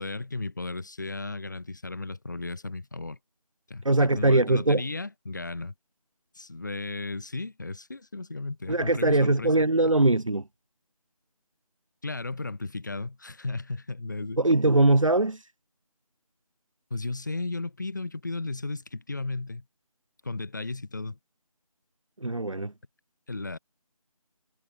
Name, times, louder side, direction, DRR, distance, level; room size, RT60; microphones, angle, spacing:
voice 1, 0.0-3.2 3.7-5.7 6.3-9.6 12.0-14.4 16.9-19.6 20.2-21.2 23.3-23.6, left 3 dB, 30° left, 5.8 m, -35 dB
voice 2, 3.8-4.8 8.7-10.5 14.4-15.4 22.2-22.7, right 2 dB, 60° right, 2.9 m, -21 dB
figure-of-eight pair, 180°, 19 cm